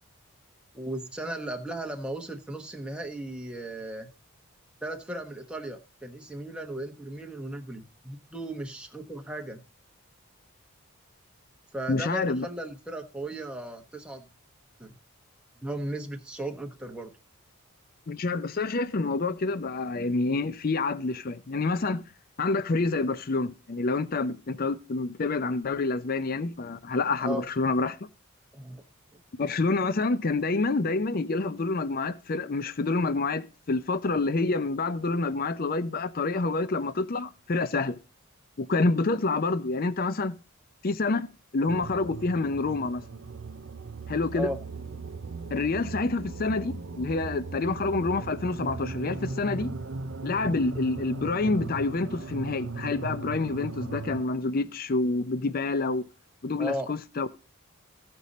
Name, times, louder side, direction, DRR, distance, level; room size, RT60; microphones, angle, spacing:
voice 1, 0.7-4.1 4.8-9.6 11.7-14.3 14.8-14.9 15.6-17.1 27.2-27.4 28.5-28.8 44.3-44.6 56.6-56.9, right 1 dB, 5° right, 1.0 m, -36 dB
voice 2, 11.9-12.5 18.1-22.0 22.4-28.0 29.4-38.0 38.6-40.3 40.8-41.3 41.5-43.0 44.1-44.5 45.5-49.7 50.2-56.1 56.4-57.3, left 3 dB, 40° left, 0.5 m, -27 dB
sound 1, 41.7-54.2, right 3 dB, 55° right, 0.6 m, -38 dB
15.5 x 5.2 x 4.1 m
head